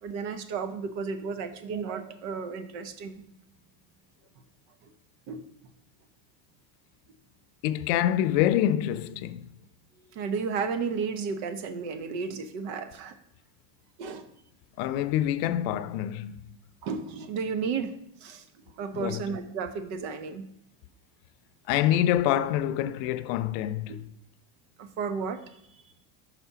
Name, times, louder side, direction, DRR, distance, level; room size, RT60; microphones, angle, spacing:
voice 1, 0.0-3.2 5.3-5.4 10.1-13.1 14.0-14.3 16.8-17.9 18.2-18.4 18.8-20.4 23.9-24.0 24.8-25.6, right 5 dB, 75° right, 1.0 m, -33 dB
voice 2, 7.6-9.5 14.8-16.5 18.9-19.3 21.7-24.1, left 12 dB, 80° left, 0.6 m, -26 dB
5.8 x 4.4 x 5.6 m
supercardioid pair, 100°, 48 cm